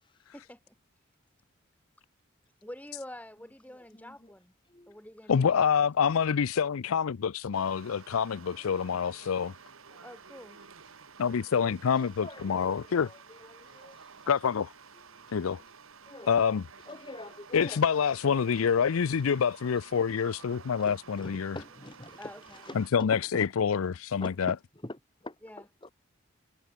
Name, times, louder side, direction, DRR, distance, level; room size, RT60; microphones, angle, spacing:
voice 1, 0.3-0.7 2.6-4.5 4.9-5.9 10.0-10.6 22.2-22.6 25.4-25.6, left 1 dB, 5° left, 4.2 m, -47 dB
voice 2, 3.7-4.3 4.6-5.0 7.5-8.2 8.6-8.9 9.2-9.3 9.9-10.0 11.9-14.3 15.3-15.4 16.1-16.5 16.8-17.8 19.3-19.5 20.8-22.8 23.1-23.5 24.2-24.6 24.8-25.0 25.6-25.9, left 1 dB, 25° left, 1.6 m, -46 dB
voice 3, 5.3-9.5 11.2-13.1 14.3-14.7 15.3-15.6 16.3-16.6 17.5-21.6 22.7-24.5, left 7 dB, 85° left, 0.5 m, -27 dB
sound 1, 7.5-22.9, right 5 dB, 80° right, 1.7 m, -52 dB
head